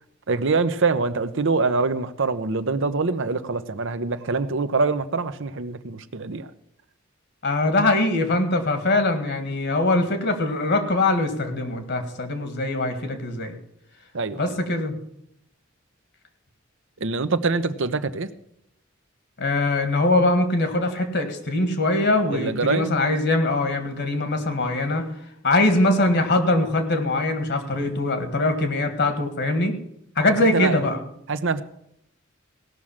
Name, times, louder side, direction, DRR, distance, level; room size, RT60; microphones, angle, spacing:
voice 1, 0.3-6.5 14.1-14.5 17.0-18.3 22.3-22.9 30.5-30.8 31.3-31.6, right 4 dB, 65° right, 11 dB, 0.8 m, -24 dB
voice 2, 7.4-13.6 14.4-15.0 19.4-25.1 25.4-29.8 30.2-31.0, left 2 dB, 60° left, 8 dB, 1.8 m, -22 dB
17.0 x 6.4 x 7.3 m, 0.76 s
head